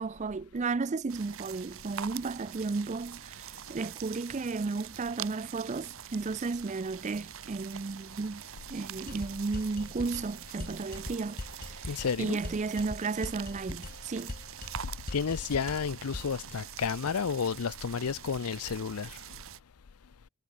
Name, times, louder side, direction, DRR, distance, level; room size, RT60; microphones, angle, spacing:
voice 1, 0.0-8.4 8.7-14.4, right 4 dB, 30° right, 0.4 m, -34 dB
sound 1, 1.1-19.6, right 10 dB, 65° right, 0.8 m, -45 dB
sound 2, 9.1-16.4, left 2 dB, 40° left, 1.1 m, -42 dB
voice 2, 11.9-12.4 15.1-19.2, left 6 dB, 90° left, 0.6 m, -31 dB
head